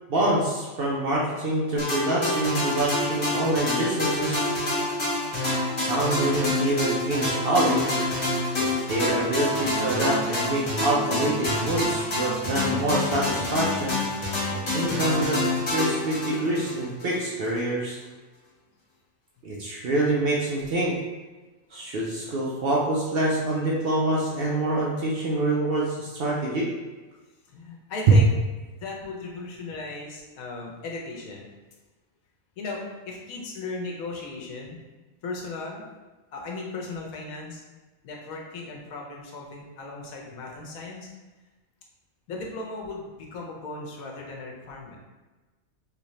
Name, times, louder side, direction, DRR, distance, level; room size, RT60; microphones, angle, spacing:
voice 1, 0.1-4.4 5.9-8.0 8.6-14.0 14.5-15.4 15.7-18.0 19.4-20.9 21.7-26.7, right 1 dB, 60° right, -4 dB, 0.6 m, -26 dB
sound 1, 1.8-17.2, left 2 dB, 55° left, 1.6 m, -27 dB
voice 2, 27.5-28.3 28.7-31.5 32.6-34.8 35.2-35.8 36.3-37.6 38.0-41.1 42.3-45.0, left 3 dB, 85° left, -1 dB, 1.2 m, -36 dB
3.4 x 2.7 x 3.1 m, 1.2 s
omnidirectional pair, 1.4 m